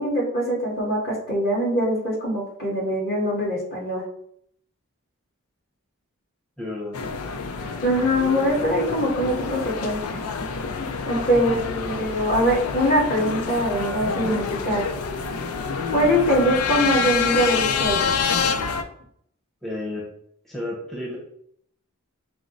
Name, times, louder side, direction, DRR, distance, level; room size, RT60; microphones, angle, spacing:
voice 1, 0.0-4.0 7.8-10.2 10.8-14.8 15.9-18.0 18.3-18.5, equal, 45° left, -4 dB, 1.6 m, -23 dB
voice 2, 6.6-7.0 11.3-12.0 19.6-20.1 20.4-21.2, left 1 dB, ahead, -5 dB, 0.8 m, -32 dB
sound 1, 6.9-18.8, left 5 dB, 90° left, 0.4 m, -27 dB
5.9 x 2.0 x 3.8 m, 0.69 s
head